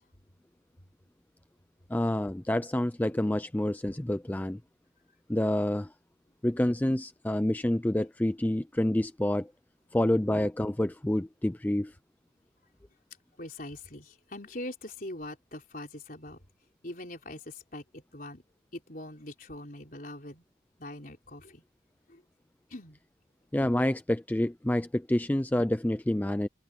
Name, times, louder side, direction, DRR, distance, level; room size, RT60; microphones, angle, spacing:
voice 1, 1.9-4.6 5.3-5.9 6.4-9.5 9.9-11.9 23.5-26.5, left 1 dB, 10° left, 0.4 m, -28 dB
voice 2, 13.4-16.4 16.8-18.4 18.7-20.4 20.8-21.6 22.1-22.2 22.7-23.0, left 1 dB, 45° left, 4.6 m, -42 dB
head